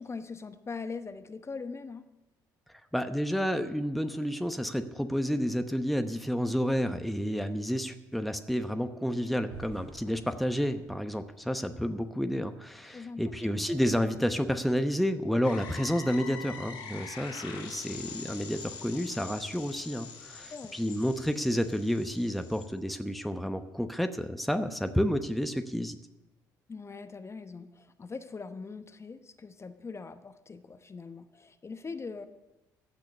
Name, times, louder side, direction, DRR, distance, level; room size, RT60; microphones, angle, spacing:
voice 1, 0.0-2.1 12.8-13.7 20.5-20.8 26.7-32.3, left 4 dB, 25° left, 9 dB, 1.0 m, -42 dB
voice 2, 2.9-26.0, equal, ahead, 8 dB, 1.0 m, -30 dB
sound 1, 9.5-12.5, right 4 dB, 70° right, 3.3 m, -51 dB
sound 2, 15.4-22.7, left 5 dB, 65° left, 3.0 m, -44 dB
15.5 x 6.2 x 9.8 m, 1.0 s
figure-of-eight pair, 50°, 10 cm